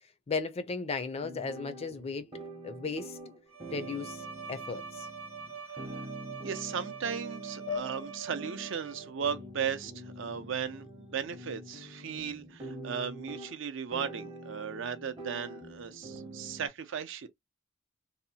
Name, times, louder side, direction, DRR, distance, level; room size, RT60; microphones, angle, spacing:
voice 1, 0.3-2.3 2.6-3.2 3.7-5.1, left 4 dB, 30° left, 0.4 m, -35 dB
sound 1, 1.2-16.7, right 1 dB, 25° right, 0.7 m, -46 dB
Bowed string instrument, 3.5-9.3, right 6 dB, 85° right, 0.8 m, -44 dB
voice 2, 6.4-17.3, right 7 dB, 60° right, 0.5 m, -36 dB
sound 2, 7.7-10.6, left 7 dB, 75° left, 0.6 m, -43 dB
2.7 x 2.0 x 2.7 m
head